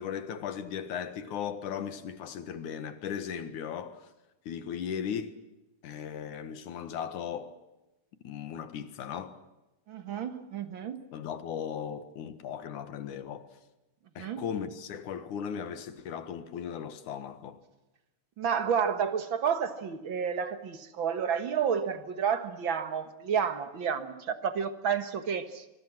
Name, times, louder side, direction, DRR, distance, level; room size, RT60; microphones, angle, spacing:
voice 1, 0.0-4.1 4.5-5.3 5.8-7.5 8.2-9.4 11.1-13.5 14.2-17.6, left 8 dB, 65° left, 2.9 m, -37 dB
voice 2, 9.9-11.0 14.2-14.4 18.4-25.6, right 7 dB, 50° right, 1.6 m, -30 dB
25.0 x 24.0 x 6.1 m
omnidirectional pair, 4.0 m